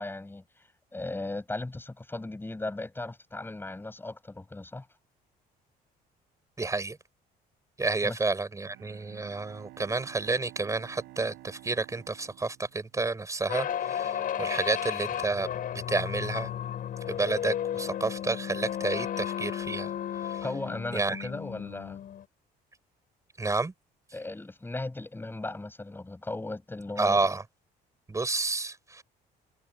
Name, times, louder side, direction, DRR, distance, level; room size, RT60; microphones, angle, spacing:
voice 1, 0.0-4.9 8.0-8.2 20.4-22.0 24.1-27.3, left 2 dB, 10° left, 7.7 m, -37 dB
voice 2, 6.6-7.0 7.8-16.5 17.1-19.9 20.2-20.5 20.9-21.3 23.4-23.7 27.0-27.4 28.1-29.0, right 3 dB, 20° right, 5.5 m, -30 dB
Bowed string instrument, 8.6-13.4, right 18 dB, 90° right, 5.2 m, -52 dB
sound 1, 13.5-22.2, left 10 dB, 55° left, 5.2 m, -34 dB
cardioid pair, 110°, 17 cm